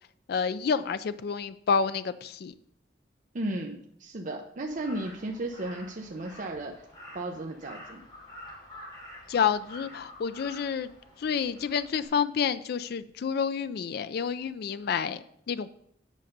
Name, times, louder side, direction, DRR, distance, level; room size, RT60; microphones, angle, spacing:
voice 1, 0.3-2.5 9.3-10.9 11.2-15.7, left 6 dB, 60° left, 13 dB, 0.4 m, -29 dB
voice 2, 3.3-6.7 7.1-8.0, right 1 dB, 45° right, 2 dB, 0.7 m, -34 dB
Crow, 4.7-12.0, left 1 dB, 25° left, 3.4 m, -48 dB
9.2 x 5.4 x 5.2 m, 0.70 s
head